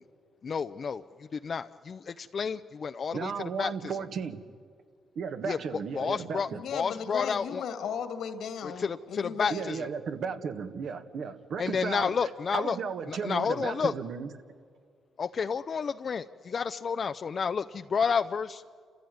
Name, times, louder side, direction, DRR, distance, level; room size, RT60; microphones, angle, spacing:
voice 1, 0.4-1.0 1.3-3.3 3.6-3.7 5.5-5.6 6.0-7.6 8.6-9.9 11.6-12.8 13.1-13.9 15.2-18.6, left 6 dB, 45° left, 9 dB, 0.5 m, -30 dB
voice 2, 3.1-4.4 5.1-6.6 9.5-12.2 12.5-14.3, right 6 dB, 65° right, 8 dB, 1.6 m, -34 dB
voice 3, 6.5-9.6, left 7 dB, 75° left, 9 dB, 2.1 m, -36 dB
28.5 x 15.0 x 9.4 m, 2.1 s
cardioid pair, 90°, 0 cm